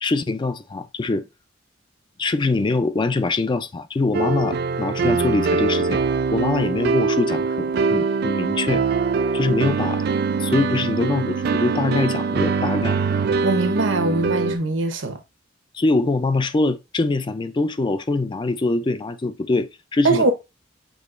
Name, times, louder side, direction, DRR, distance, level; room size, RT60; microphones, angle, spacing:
voice 1, 0.0-1.3 2.2-6.0 6.3-8.8 9.3-10.0 10.4-13.0 15.7-20.3, left 3 dB, 25° left, 0.4 m, -23 dB
sound 1, 4.1-14.6, right 4 dB, 55° right, 0.4 m, -23 dB
voice 2, 13.4-15.2 20.0-20.3, right 3 dB, 90° right, 0.9 m, -21 dB
6.3 x 2.9 x 2.5 m
head